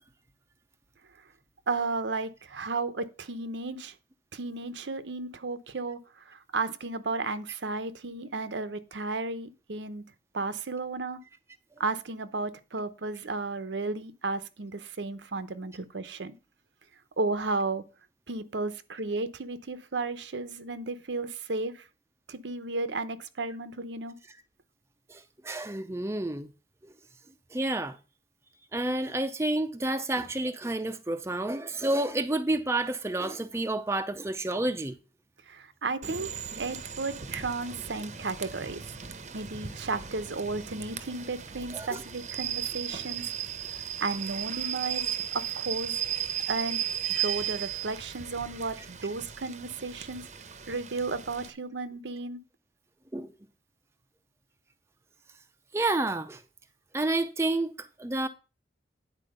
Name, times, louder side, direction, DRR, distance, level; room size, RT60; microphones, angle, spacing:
voice 1, 1.7-3.9 4.3-11.2 11.8-16.3 17.2-17.9 18.3-21.9 22.3-24.2 35.5-36.3 36.6-38.9 39.3-43.2 44.0-46.0 46.5-46.9 47.2-50.3 50.7-52.4, right 3 dB, 80° right, 0.8 m, -33 dB
voice 2, 25.1-26.5 26.8-26.9 27.5-28.0 28.7-34.9 41.7-42.0 53.1-53.3 55.7-56.4 56.9-58.3, right 2 dB, 15° right, 0.5 m, -30 dB
Rain / Train, 36.0-51.5, right 9 dB, 40° right, 0.7 m, -36 dB
9.9 x 4.5 x 6.6 m
head